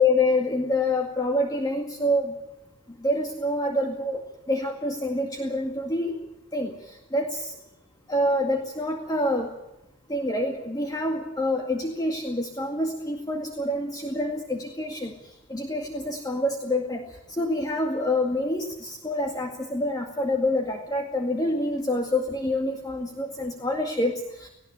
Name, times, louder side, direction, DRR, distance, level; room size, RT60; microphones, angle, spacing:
voice 1, 0.0-2.3 3.0-4.2 4.5-6.1 6.5-7.5 8.1-9.5 10.1-15.1 15.5-17.0 17.4-24.5, left 1 dB, 15° left, 2 dB, 2.1 m, -26 dB
18.5 x 18.0 x 8.5 m, 0.89 s
head